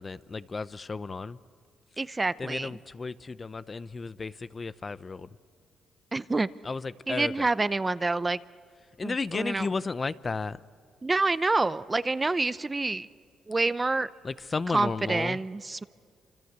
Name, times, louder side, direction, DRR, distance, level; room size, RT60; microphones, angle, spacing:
voice 1, 0.0-1.4 2.4-5.3 6.6-7.5 9.0-10.6 14.2-15.4, left 4 dB, 30° left, 0.7 m, -33 dB
voice 2, 2.0-2.7 6.1-6.5 7.1-8.4 9.0-9.7 11.0-13.1 13.5-14.1 14.7-15.8, right 3 dB, 20° right, 0.6 m, -27 dB
27.5 x 26.0 x 8.1 m
cardioid pair, 90°, 0 cm